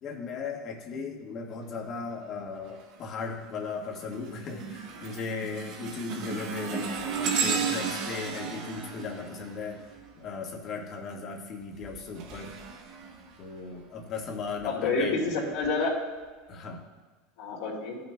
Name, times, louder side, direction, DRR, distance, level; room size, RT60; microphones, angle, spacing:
voice 1, 0.0-9.9 10.2-12.6 13.4-15.3 16.5-16.8, left 4 dB, 40° left, 0 dB, 1.6 m, -37 dB
sound 1, 2.7-3.1 3.5-10.4 11.6-13.8 14.4-14.6 15.5-15.6, right 5 dB, 55° right, 1.0 m, -34 dB
voice 2, 14.6-15.9 17.4-18.0, left 3 dB, 70° left, -3 dB, 2.5 m, -29 dB
15.0 x 5.9 x 2.3 m, 1.3 s
supercardioid pair, 125°, 0 cm